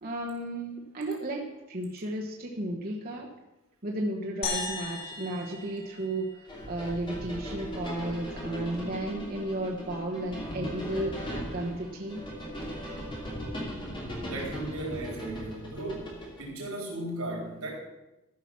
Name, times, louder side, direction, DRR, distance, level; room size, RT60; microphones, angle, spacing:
voice 1, 0.0-3.3 3.8-12.2, right 1 dB, 40° right, -2 dB, 1.2 m, -34 dB
sound 1, 4.4-6.9, left 3 dB, 45° left, 2.2 m, -37 dB
sound 2, 6.5-16.5, equal, 25° left, 2.9 m, -38 dB
voice 2, 14.3-16.1 16.4-17.7, right 1 dB, 80° right, -1 dB, 3.9 m, -36 dB
13.5 x 5.9 x 5.9 m, 1.0 s
head